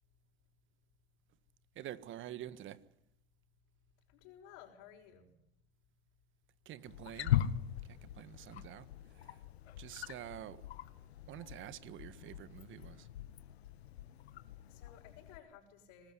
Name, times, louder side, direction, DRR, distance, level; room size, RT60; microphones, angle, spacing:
voice 1, 1.7-2.8 6.6-7.4 7.9-8.9 9.1-9.4 9.8-10.6 11.3-13.1, right 12 dB, 35° right, 1.6 m, -48 dB
voice 2, 4.1-5.3 14.7-16.1, left 9 dB, 55° left, 5.6 m, -56 dB
Wild animals, 6.9-15.4, left 11 dB, 70° left, 1.8 m, -40 dB
25.5 x 19.5 x 10.0 m
hypercardioid pair, 100°, 33 cm